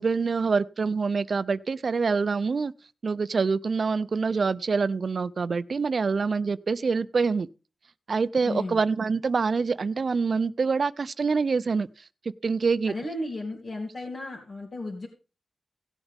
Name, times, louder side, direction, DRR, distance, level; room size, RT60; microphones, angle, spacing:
voice 1, 0.0-2.7 3.0-7.5 8.1-11.9 12.4-12.9, right 4 dB, 60° right, 0.6 m, -25 dB
voice 2, 8.4-8.8 12.9-15.1, left 2 dB, 55° left, 3.2 m, -34 dB
17.0 x 8.0 x 3.6 m
cardioid pair, 60°, 0 cm